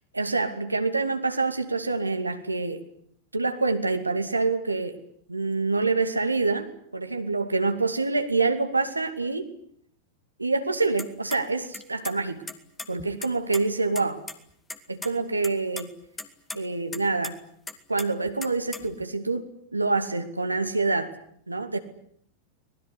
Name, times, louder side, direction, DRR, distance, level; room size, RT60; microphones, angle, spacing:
voice 1, 0.1-2.8 3.3-5.0 5.3-9.5 10.4-12.4 12.9-14.2 14.9-15.9 16.5-17.3 17.9-19.5 19.7-21.1 21.5-21.8, right 3 dB, 80° right, 7 dB, 2.5 m, -26 dB
sound 1, 11.0-11.4 11.7-12.2 12.5-13.6 14.0-14.1 14.3-14.4 14.7-15.1 15.4-15.8 16.2-16.6 16.9-17.3 17.7-19.0, left 3 dB, 10° left, 2.3 m, -37 dB
25.0 x 20.0 x 10.0 m, 0.67 s
figure-of-eight pair, 90°, 0 cm